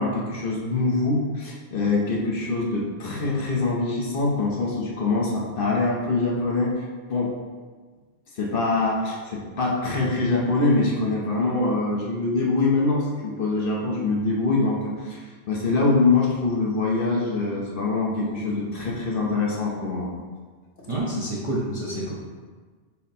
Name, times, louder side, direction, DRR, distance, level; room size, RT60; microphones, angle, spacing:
voice 1, 0.0-7.4 8.3-20.1, left 3 dB, 55° left, -3 dB, 0.8 m, -24 dB
voice 2, 20.9-22.1, right 1 dB, 35° right, -6 dB, 0.6 m, -28 dB
5.8 x 2.1 x 4.1 m, 1.5 s
omnidirectional pair, 1.2 m